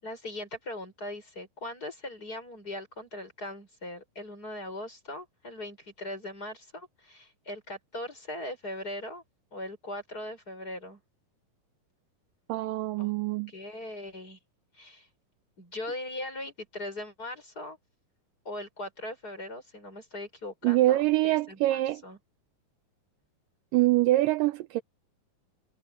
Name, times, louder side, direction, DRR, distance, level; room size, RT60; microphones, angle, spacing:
voice 1, 0.0-9.2 9.5-11.0 13.0-13.1 13.5-14.4 14.7-15.1 15.6-17.8 18.5-21.0 21.2-22.2, left 1 dB, 25° left, 7.3 m, -40 dB
voice 2, 12.5-13.5 20.6-22.0 23.7-24.8, right 17 dB, 80° right, 2.2 m, -24 dB
omnidirectional pair, 4.0 m